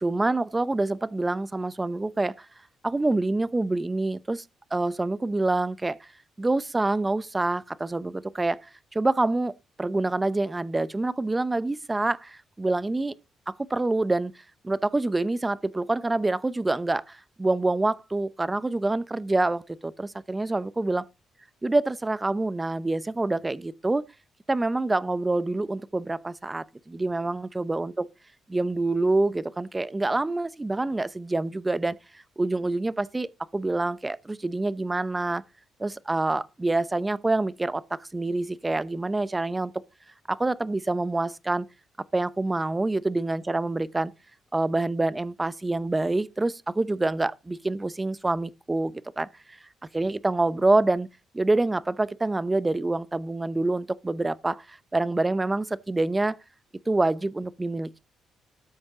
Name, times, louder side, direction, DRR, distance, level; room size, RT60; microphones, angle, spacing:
voice 1, 0.0-2.5 2.8-4.4 4.7-6.1 6.4-8.7 8.9-9.5 9.8-13.1 13.5-14.3 14.6-21.1 21.6-24.0 24.5-28.1 28.5-32.0 32.4-35.4 35.8-39.7 40.3-41.7 42.1-44.1 44.5-49.6 49.9-51.1 51.3-56.4 56.9-58.0, right 2 dB, 15° right, 0.7 m, -26 dB
13.0 x 8.5 x 3.7 m
cardioid pair, 90°, 0 cm